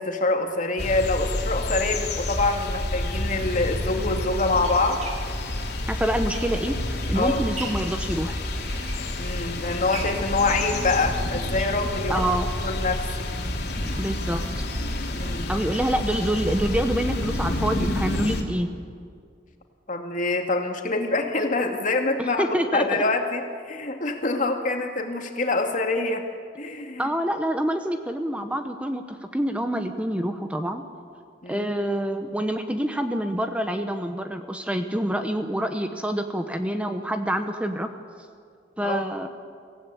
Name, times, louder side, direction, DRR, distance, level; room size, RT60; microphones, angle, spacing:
voice 1, 0.0-5.0 7.1-7.5 9.2-12.2 12.6-13.3 15.1-15.5 19.9-26.2 26.6-27.1 31.4-31.7 38.8-39.1, left 3 dB, 50° left, 3 dB, 2.2 m, -25 dB
sound 1, 0.8-18.4, left 1 dB, 65° left, 2.9 m, -29 dB
sound 2, 4.6-6.9 7.3-8.0 8.5-9.5 9.9-12.4 12.8-12.9 13.2-13.3 13.6-13.7, right 3 dB, 40° right, 2.8 m, -41 dB
voice 2, 5.9-6.7 7.1-8.4 12.1-12.5 14.0-14.6 15.5-18.7 22.2-23.0 27.0-30.8 31.5-37.9 38.8-39.3, right 1 dB, 5° right, 7 dB, 0.9 m, -26 dB
24.5 x 16.0 x 8.5 m, 2.2 s
head